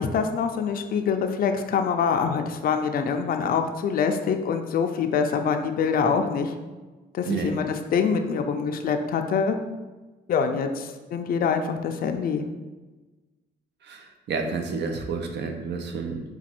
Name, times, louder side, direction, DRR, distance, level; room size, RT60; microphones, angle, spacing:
voice 1, 0.0-6.5 7.1-9.6 10.3-12.4, left 6 dB, 45° left, 6 dB, 0.4 m, -25 dB
voice 2, 13.9-16.2, right 4 dB, 60° right, 5 dB, 0.6 m, -30 dB
4.1 x 2.3 x 4.3 m, 1.2 s
cardioid pair, 90°, 20 cm